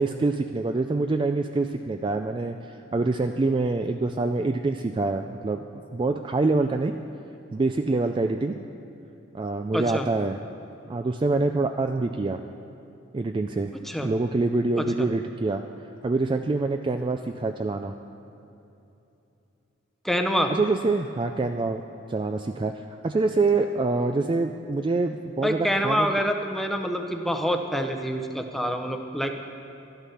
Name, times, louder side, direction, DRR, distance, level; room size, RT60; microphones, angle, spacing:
voice 1, 0.0-5.6 5.9-6.9 7.5-8.6 9.3-10.4 10.9-12.4 13.1-13.7 14.0-15.6 16.0-17.9 20.5-21.8 22.1-26.1, right 3 dB, 25° right, 6 dB, 0.3 m, -25 dB
voice 2, 9.7-10.1 13.8-14.1 14.8-15.1 20.0-20.5 25.4-29.3, equal, ahead, 4 dB, 0.7 m, -26 dB
12.5 x 11.5 x 5.6 m, 2.9 s
head